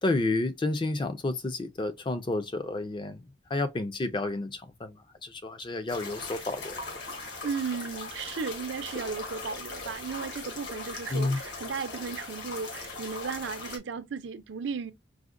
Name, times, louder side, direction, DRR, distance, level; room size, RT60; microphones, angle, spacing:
voice 1, 0.0-6.8 11.1-11.4, left 2 dB, 25° left, 0.4 m, -30 dB
sound 1, 5.9-13.8, left 3 dB, 60° left, 1.0 m, -39 dB
voice 2, 7.4-14.9, right 5 dB, 70° right, 0.4 m, -35 dB
4.7 x 2.1 x 2.4 m
head